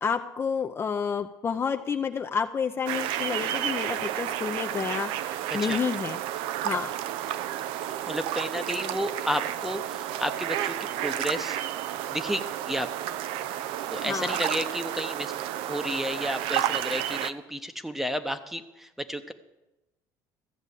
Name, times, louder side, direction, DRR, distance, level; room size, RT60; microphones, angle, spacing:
voice 1, 0.0-6.2 6.6-7.0 14.0-14.4, left 6 dB, 25° left, 5 dB, 0.5 m, -30 dB
sound 1, 2.9-17.3, right 12 dB, 80° right, 0.6 m, -31 dB
voice 2, 5.5-5.8 8.1-11.6 12.1-12.9 13.9-15.3 15.7-19.3, equal, 5° right, 10 dB, 0.8 m, -32 dB
14.0 x 7.3 x 8.2 m, 1.0 s
cardioid pair, 125°, 9 cm